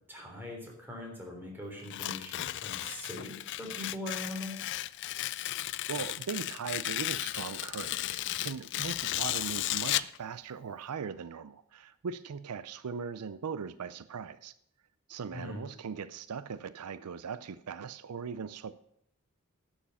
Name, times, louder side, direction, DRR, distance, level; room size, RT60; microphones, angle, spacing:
voice 1, 0.0-4.7 15.3-15.6, left 1 dB, 10° right, -1 dB, 3.5 m, -41 dB
Tearing, 1.8-10.2, left 15 dB, 55° left, 0.3 m, -35 dB
voice 2, 5.9-14.5 15.1-18.8, right 6 dB, 85° right, 15 dB, 0.5 m, -39 dB
11.0 x 7.2 x 7.0 m, 0.69 s
head